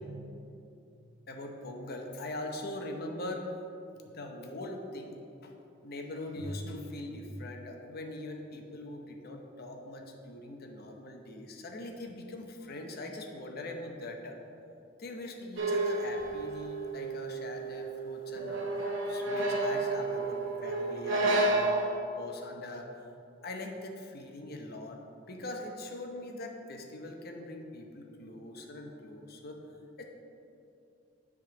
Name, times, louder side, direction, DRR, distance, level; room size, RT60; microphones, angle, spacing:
voice 1, 1.3-3.5 4.1-5.5 5.8-14.4 15.0-21.8 22.2-22.9 23.4-25.0 25.3-29.6 30.0-30.1, left 1 dB, 55° left, 3 dB, 0.8 m, -42 dB
sound 1, 15.6-21.9, right 2 dB, 70° right, 1.1 m, -31 dB
7.8 x 3.6 x 5.9 m, 2.7 s
head